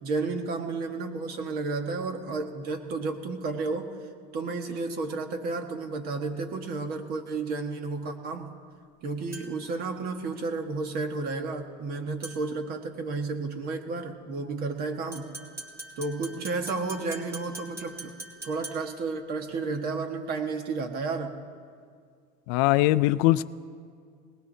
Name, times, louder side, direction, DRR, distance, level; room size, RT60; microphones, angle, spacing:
voice 1, 0.0-3.9 4.3-8.5 9.0-15.3 16.0-18.1 18.4-21.3, right 3 dB, 45° right, 5 dB, 1.5 m, -32 dB
sound 1, 9.3-9.8 12.2-12.6 15.1-19.1, right 2 dB, 15° right, 2.0 m, -43 dB
voice 2, 22.5-23.4, left 17 dB, 65° left, 15 dB, 0.4 m, -21 dB
19.5 x 19.5 x 2.7 m, 2.1 s
supercardioid pair, 140°, 21 cm